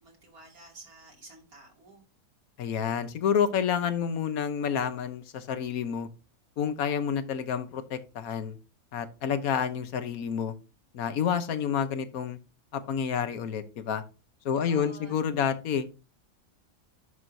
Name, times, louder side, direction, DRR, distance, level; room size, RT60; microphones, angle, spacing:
voice 1, 0.0-2.0 14.5-15.2, right 2 dB, 90° right, 0 dB, 3.2 m, -51 dB
voice 2, 2.6-6.1 6.6-8.6 8.9-10.5 10.9-12.4 12.7-14.0 14.4-15.9, left 7 dB, 80° left, 10 dB, 1.4 m, -29 dB
11.0 x 6.2 x 2.7 m, 0.30 s
omnidirectional pair, 1.5 m